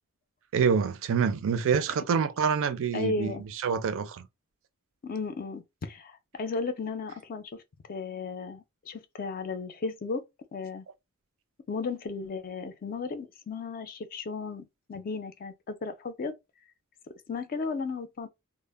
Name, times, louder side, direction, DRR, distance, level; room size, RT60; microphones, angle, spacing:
voice 1, 0.5-4.3, right 6 dB, 60° right, 0.4 m, -26 dB
voice 2, 2.9-3.4 5.0-10.3 10.5-10.9 11.7-16.4 17.3-18.3, left 4 dB, 40° left, 0.4 m, -35 dB
2.0 x 2.0 x 3.2 m
head